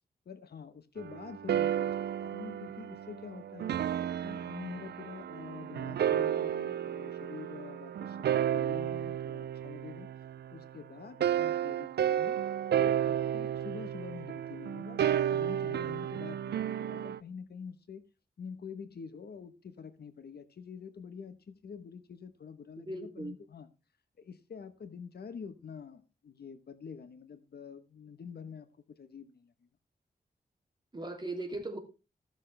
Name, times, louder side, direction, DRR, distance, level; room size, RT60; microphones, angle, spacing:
voice 1, 0.3-3.8 4.2-10.1 10.5-12.4 12.8-18.0 18.4-23.7 24.2-29.5, left 6 dB, 75° left, 1.0 m, -46 dB
sound 1, 1.0-10.7 11.2-17.2, right 10 dB, 85° right, 0.4 m, -32 dB
voice 2, 22.9-23.3 30.9-31.8, right 2 dB, 25° right, 2.6 m, -38 dB
15.5 x 6.5 x 3.3 m
wide cardioid pair, 95°, 17 cm